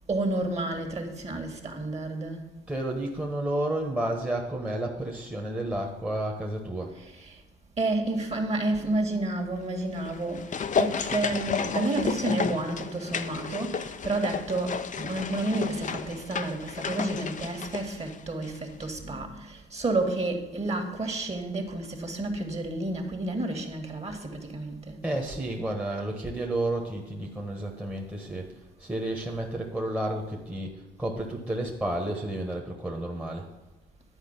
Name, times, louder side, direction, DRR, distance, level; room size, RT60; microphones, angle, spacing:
voice 1, 0.1-2.5 7.0-7.4 7.8-25.0, right 2 dB, 30° right, 2.0 m, -30 dB
voice 2, 2.7-6.9 25.0-28.5 28.8-30.7 31.0-33.5, right 1 dB, 10° right, 1.4 m, -31 dB
sound 1, 9.9-18.6 18.8-18.9, left 6 dB, 40° left, 0.7 m, -32 dB
11.0 x 4.9 x 8.1 m
cardioid pair, 90°, 20 cm